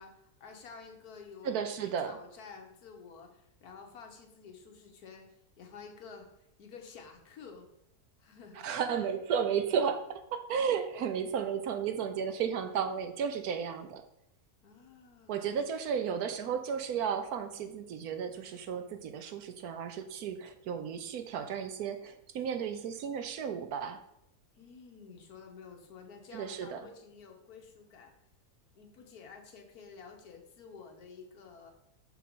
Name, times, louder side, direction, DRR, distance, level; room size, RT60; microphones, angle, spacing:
voice 1, 0.0-7.7 8.2-8.7 14.6-15.6 24.6-28.1 28.7-31.7, left 5 dB, 70° left, 3 dB, 1.5 m, -51 dB
voice 2, 1.4-2.2 8.6-14.0 15.3-24.0 26.3-26.9, right 7 dB, 70° right, 8 dB, 1.1 m, -33 dB
5.9 x 4.6 x 5.4 m, 0.78 s
omnidirectional pair, 1.7 m